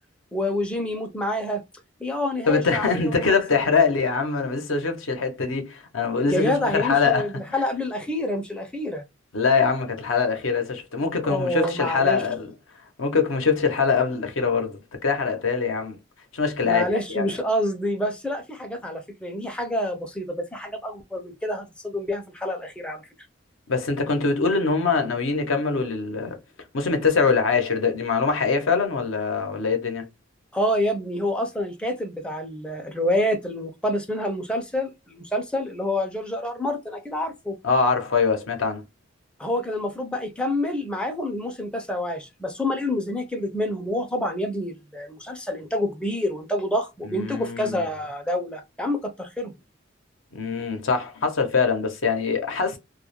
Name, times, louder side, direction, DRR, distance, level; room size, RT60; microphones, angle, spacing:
voice 1, 0.3-1.6 2.0-3.6 6.3-9.0 11.2-12.2 16.6-23.0 30.5-37.6 39.4-49.5, left 1 dB, 5° left, 0.4 m, -27 dB
voice 2, 2.4-7.3 9.3-12.5 13.0-16.0 16.3-17.3 23.7-26.4 26.7-30.1 37.6-38.8 47.1-47.8 50.3-52.8, left 5 dB, 80° left, 0.7 m, -23 dB
2.2 x 2.0 x 2.8 m
head